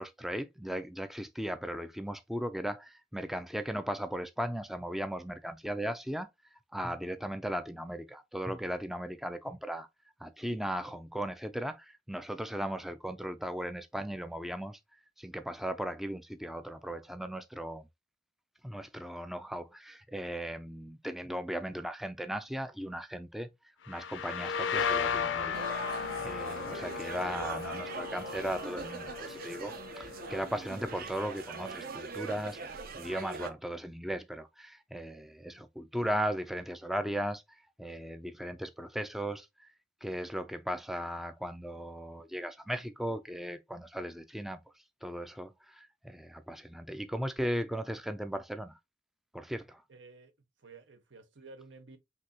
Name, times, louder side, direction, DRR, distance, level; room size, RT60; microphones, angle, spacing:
voice 1, 0.0-6.3 6.7-9.9 10.2-14.8 15.2-17.9 18.6-23.5 23.9-32.6 32.9-37.4 37.8-39.7 40.0-44.6 45.0-48.8 49.3-49.8, equal, ahead, 0.3 m, -37 dB
sound 1, 23.9-31.4, left 6 dB, 85° left, 0.5 m, -36 dB
sound 2, 25.5-33.5, right 4 dB, 55° right, 0.7 m, -42 dB
voice 2, 49.9-50.3 50.6-52.0, right 3 dB, 75° right, 1.0 m, -52 dB
6.0 x 2.7 x 2.7 m
head